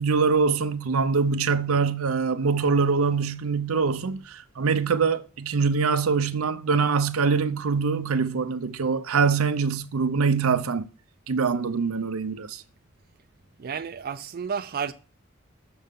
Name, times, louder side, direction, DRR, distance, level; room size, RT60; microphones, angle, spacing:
voice 1, 0.0-10.9 11.3-12.6, right 5 dB, 80° right, 0.7 m, -24 dB
voice 2, 13.6-14.9, right 6 dB, 45° right, 0.4 m, -31 dB
6.9 x 6.4 x 3.7 m
head